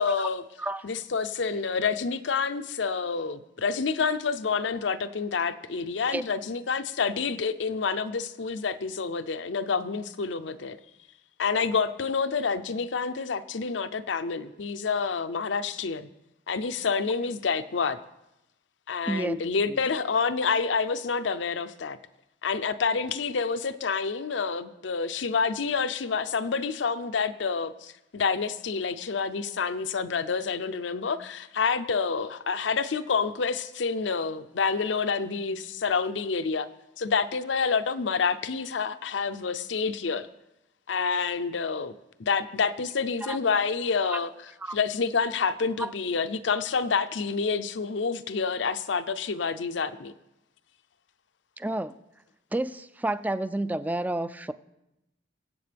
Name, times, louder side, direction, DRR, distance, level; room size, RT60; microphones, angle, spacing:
voice 1, 0.0-0.4 0.8-10.8 11.4-16.1 16.5-18.0 18.9-22.0 22.4-36.7 37.0-40.3 40.9-41.9 42.2-50.1, left 5 dB, 75° left, 11 dB, 0.6 m, -28 dB
voice 2, 51.6-51.9 52.5-54.5, right 1 dB, 10° right, 13 dB, 0.3 m, -30 dB
22.5 x 8.0 x 3.4 m, 0.92 s
head